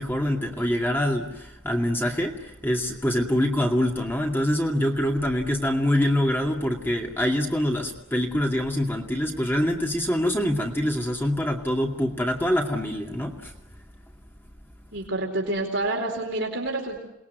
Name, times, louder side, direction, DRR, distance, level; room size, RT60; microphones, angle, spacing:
voice 1, 0.0-13.5, equal, 10° left, 1 dB, 2.3 m, -25 dB
voice 2, 14.9-17.0, right 2 dB, 60° right, 1 dB, 4.3 m, -28 dB
28.5 x 20.5 x 9.3 m, 0.90 s
head